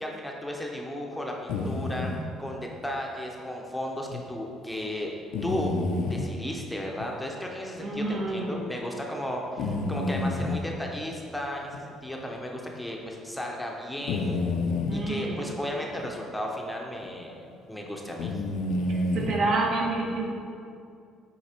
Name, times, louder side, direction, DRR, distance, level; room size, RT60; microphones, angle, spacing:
voice 1, 0.0-5.1 5.4-5.8 6.1-14.4 14.9-18.4, left 1 dB, 5° left, 0 dB, 0.8 m, -35 dB
sound 1, 1.5-2.2 4.1-4.2 5.3-6.3 7.0-7.1 7.8-7.9 9.6-10.7 11.7-11.8 12.3-12.4 14.1-15.0 16.0-16.1 17.0-17.2 18.2-19.4, left 2 dB, 80° left, 0.6 m, -29 dB
voice 2, 7.8-8.6 14.9-15.4 18.9-20.3, right 2 dB, 60° right, -2 dB, 1.4 m, -28 dB
8.4 x 4.1 x 4.4 m, 2.4 s
cardioid pair, 125°, 0 cm